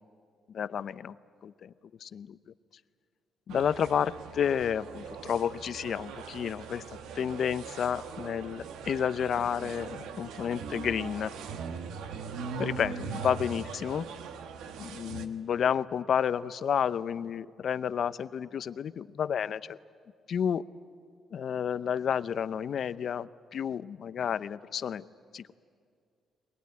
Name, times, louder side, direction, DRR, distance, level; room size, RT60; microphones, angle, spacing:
voice 1, 0.5-1.1 1.4-1.7 2.0-2.4 3.5-6.8 7.1-11.3 12.6-14.1 14.8-19.8 20.3-20.6 21.3-25.0 25.3-25.5, left 8 dB, 60° left, 16 dB, 0.6 m, -31 dB
sound 1, 3.5-15.3, right 6 dB, 90° right, 1.3 m, -41 dB
22.0 x 22.0 x 9.5 m, 2.3 s
cardioid pair, 90°, 0 cm